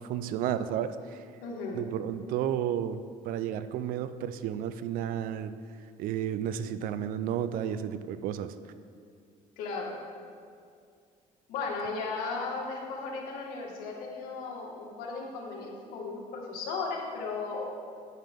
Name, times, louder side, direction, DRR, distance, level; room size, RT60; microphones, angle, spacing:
voice 1, 0.0-1.2 1.7-5.5 6.0-8.5, right 10 dB, 75° right, 12 dB, 0.5 m, -32 dB
voice 2, 1.4-1.9 9.6-9.9 11.5-17.7, left 4 dB, 85° left, -1 dB, 1.8 m, -36 dB
9.4 x 9.4 x 3.6 m, 2.3 s
cardioid pair, 110°, 15 cm